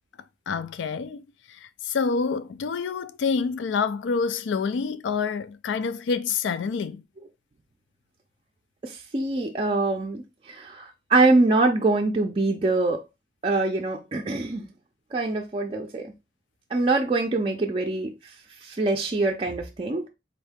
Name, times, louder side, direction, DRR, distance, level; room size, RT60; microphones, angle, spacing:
voice 1, 0.5-1.2 1.5-7.0, left 5 dB, 85° left, 0.4 m, -27 dB
voice 2, 8.8-13.0 13.4-14.7 15.1-16.1 16.7-18.1 18.6-20.1, right 2 dB, 30° right, 0.4 m, -24 dB
4.0 x 2.7 x 3.5 m
head